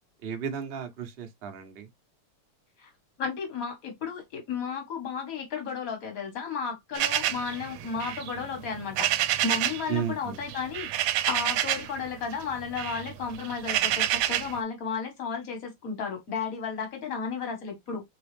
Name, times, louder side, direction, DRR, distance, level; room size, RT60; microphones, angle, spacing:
voice 1, 0.2-1.9 9.9-10.4, right 8 dB, 55° right, 0.6 m, -34 dB
voice 2, 3.2-10.9 11.3-18.0, left 5 dB, 45° left, 1.8 m, -33 dB
sound 1, 6.9-9.9 10.2-12.0 12.3-14.6, right 12 dB, 85° right, 1.4 m, -28 dB
4.0 x 3.6 x 3.3 m
omnidirectional pair, 2.3 m